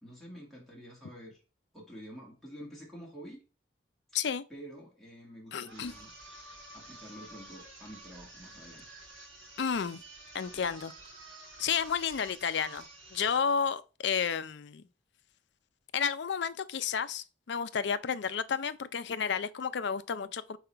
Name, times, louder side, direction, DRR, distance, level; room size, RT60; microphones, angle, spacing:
voice 1, 0.0-1.4 1.7-3.4 4.5-6.1 6.7-8.9, equal, ahead, 1.8 m, -48 dB
voice 2, 5.5-5.9 9.6-10.0 10.3-10.9 11.6-12.9 13.1-14.8 15.9-20.6, left 6 dB, 65° left, 0.4 m, -31 dB
sound 1, 5.6-13.5, right 2 dB, 80° right, 3.6 m, -50 dB
5.3 x 4.8 x 4.4 m
head